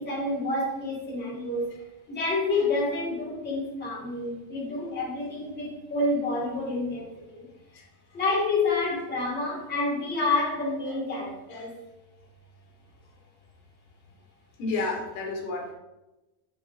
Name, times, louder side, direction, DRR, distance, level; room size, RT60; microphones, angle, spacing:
voice 1, 0.0-1.8 2.1-7.5 8.1-11.7, left 2 dB, 20° left, -3 dB, 2.0 m, -28 dB
voice 2, 14.6-15.7, left 3 dB, 75° left, 0 dB, 2.4 m, -31 dB
9.1 x 5.9 x 2.6 m, 1.0 s
supercardioid pair, 165°, 47 cm